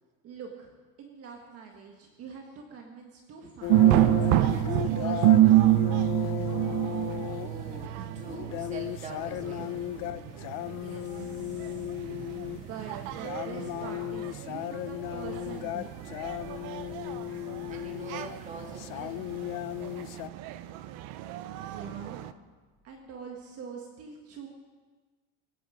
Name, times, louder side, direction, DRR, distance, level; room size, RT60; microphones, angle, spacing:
voice 1, 0.2-5.4 10.7-12.0 12.5-16.1 21.5-22.2 22.8-24.5, right 6 dB, 45° right, 1 dB, 1.7 m, -44 dB
sound 1, 3.6-20.3, left 16 dB, 65° left, 0.6 m, -36 dB
sound 2, 3.7-22.3, right 14 dB, 65° right, 0.7 m, -28 dB
sound 3, 7.0-23.2, left 3 dB, 45° left, 5.0 m, -57 dB
voice 2, 7.4-9.9 17.7-19.3, right 3 dB, 20° right, 1 dB, 2.2 m, -44 dB
23.0 x 9.2 x 5.1 m, 1.4 s
cardioid pair, 160°, 34 cm